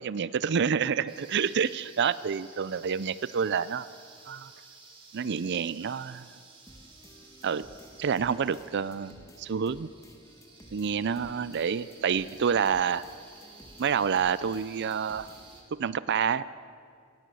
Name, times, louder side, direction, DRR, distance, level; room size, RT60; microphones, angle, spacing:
voice 1, 0.0-3.9 4.3-4.5 5.1-6.3 7.4-7.7 8.0-9.9 10.7-13.0 13.8-15.3 15.8-16.5, right 6 dB, 55° right, 17 dB, 0.4 m, -28 dB
sound 1, 1.1-15.6, right 3 dB, 25° right, 3.7 m, -54 dB
sound 2, 6.7-15.7, equal, 15° left, 1.8 m, -54 dB
19.0 x 18.5 x 7.7 m, 2.2 s
head